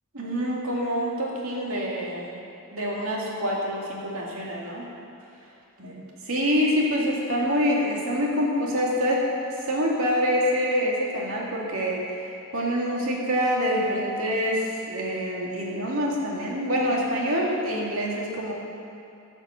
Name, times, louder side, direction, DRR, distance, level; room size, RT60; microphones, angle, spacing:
voice 1, 0.1-2.4 2.7-4.9 5.8-9.3 9.7-18.5, equal, 75° right, -3 dB, 2.3 m, -26 dB
12.0 x 7.2 x 7.1 m, 2.7 s
head